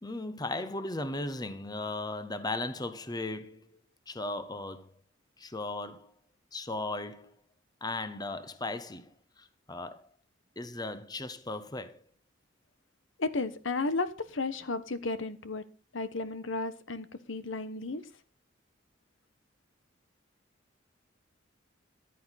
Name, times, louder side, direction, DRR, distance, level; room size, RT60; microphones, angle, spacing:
voice 1, 0.0-3.7 4.1-4.9 5.4-6.1 6.5-7.4 7.8-9.1 9.4-10.1 10.6-12.0, left 2 dB, 20° left, 1.0 m, -37 dB
voice 2, 13.2-15.6 15.9-18.0, left 3 dB, 75° left, 1.2 m, -33 dB
14.5 x 11.0 x 4.1 m
head